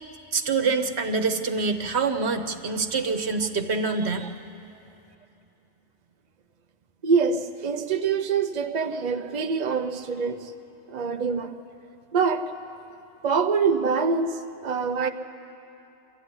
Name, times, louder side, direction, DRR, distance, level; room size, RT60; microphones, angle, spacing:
voice 1, 0.3-4.3, right 4 dB, 80° right, 5 dB, 1.4 m, -25 dB
voice 2, 7.0-10.5 10.9-11.5 12.1-12.5 13.2-15.1, right 5 dB, 45° right, 6 dB, 0.8 m, -25 dB
23.5 x 14.5 x 9.8 m, 2.8 s
omnidirectional pair, 1.1 m